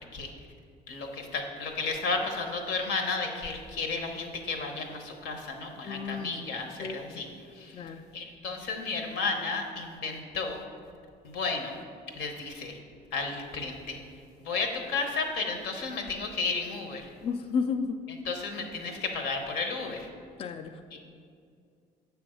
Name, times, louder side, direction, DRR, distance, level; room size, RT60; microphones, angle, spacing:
voice 1, 0.9-7.3 7.5-7.9 8.1-10.6 11.2-11.8 12.1-12.7 13.1-14.0 14.4-17.1 18.2-20.1 20.9-21.1, left 4 dB, 80° left, 4 dB, 1.0 m, -33 dB
voice 2, 5.9-6.4 6.8-7.2 7.7-8.1 17.2-18.0 20.4-20.8, left 5 dB, 35° left, 6 dB, 0.3 m, -33 dB
6.9 x 3.4 x 6.2 m, 2.3 s
cardioid pair, 110°, 17 cm